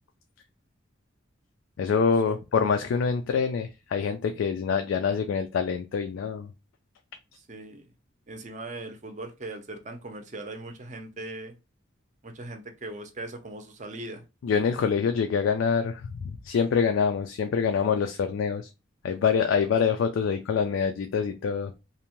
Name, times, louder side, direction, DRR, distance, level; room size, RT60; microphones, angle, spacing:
voice 1, 1.8-6.5 14.4-18.7 19.0-21.7, left 6 dB, 70° left, 0.3 m, -25 dB
voice 2, 7.4-7.9 8.3-11.6 12.2-14.2, right 2 dB, 35° right, 0.5 m, -39 dB
2.6 x 2.1 x 2.9 m
head